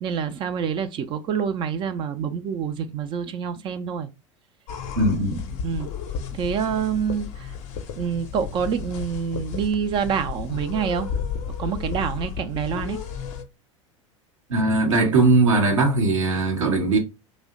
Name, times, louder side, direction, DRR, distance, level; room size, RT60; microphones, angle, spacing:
voice 1, 0.0-4.1 5.6-5.9 6.3-7.5 7.9-11.1 11.6-13.0, right 7 dB, 30° right, 0.4 m, -27 dB
sound 1, 4.7-13.4, left 7 dB, 45° left, 0.5 m, -33 dB
voice 2, 5.0-5.5 14.5-17.0, right 2 dB, 70° right, 0.8 m, -20 dB
2.7 x 2.1 x 3.6 m
figure-of-eight pair, 80°, 17 cm